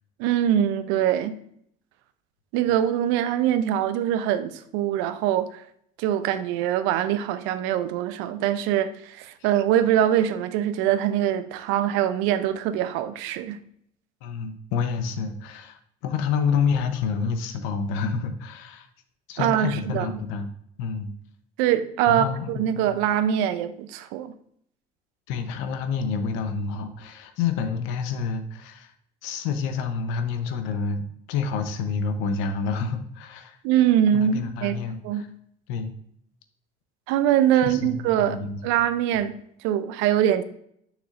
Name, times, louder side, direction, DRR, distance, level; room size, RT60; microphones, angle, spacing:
voice 1, 0.2-1.4 2.5-5.6 6.0-13.6 19.4-20.1 21.6-24.3 33.6-35.3 37.1-38.4 38.6-40.4, right 10 dB, 75° right, 0.6 m, -23 dB
voice 2, 14.2-18.9 19.3-20.5 20.8-21.1 22.1-22.9 25.3-28.9 29.2-33.6 34.1-35.3 35.7-35.9 37.5-38.6, left 5 dB, 75° left, 0.8 m, -28 dB
6.6 x 6.1 x 2.5 m
hypercardioid pair, 65°, 20 cm